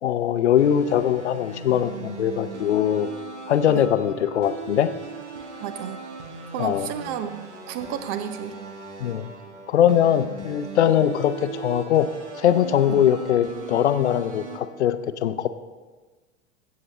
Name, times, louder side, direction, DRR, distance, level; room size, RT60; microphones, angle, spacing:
voice 1, 0.0-3.1 3.5-4.9 6.6-6.9 9.0-9.3 9.7-12.1 12.4-15.5, left 10 dB, 65° left, 13 dB, 0.7 m, -21 dB
sound 1, 0.6-14.6, right 4 dB, 70° right, 1.4 m, -39 dB
voice 2, 5.6-6.0 6.5-8.6 12.9-13.0, right 9 dB, 35° right, 11 dB, 0.8 m, -32 dB
15.5 x 7.7 x 3.2 m, 1.3 s
figure-of-eight pair, 90°, 37 cm